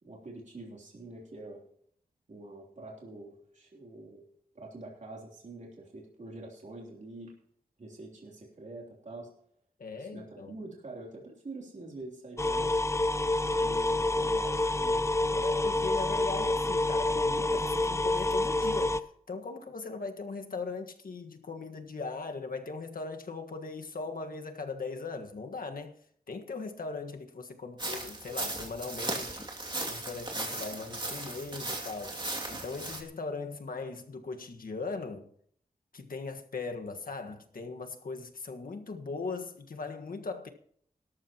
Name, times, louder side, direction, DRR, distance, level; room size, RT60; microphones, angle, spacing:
voice 1, 0.0-1.6 2.3-4.2 4.5-7.3 7.8-9.3 10.0-12.7 13.6-15.1, right 2 dB, 55° right, 3.2 m, -46 dB
voice 2, 9.8-10.5 15.3-26.0 26.3-29.5 29.9-35.3 35.9-40.5, left 4 dB, 70° left, 1.6 m, -39 dB
sound 1, 12.4-19.0, left 2 dB, 20° left, 0.6 m, -28 dB
sound 2, 27.8-33.0, right 2 dB, 30° right, 2.6 m, -37 dB
18.0 x 13.5 x 3.0 m
wide cardioid pair, 115°, 15 cm